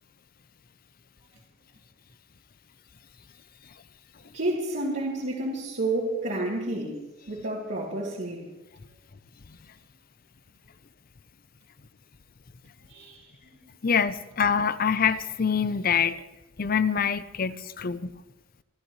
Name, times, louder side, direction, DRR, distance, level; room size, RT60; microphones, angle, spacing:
voice 1, 4.3-6.9 7.3-8.4 12.9-13.3, right 1 dB, 60° right, -7 dB, 2.8 m, -30 dB
voice 2, 13.8-16.2 16.6-18.1, left 6 dB, 45° left, 14 dB, 0.6 m, -25 dB
28.5 x 13.0 x 3.2 m, 1.0 s
head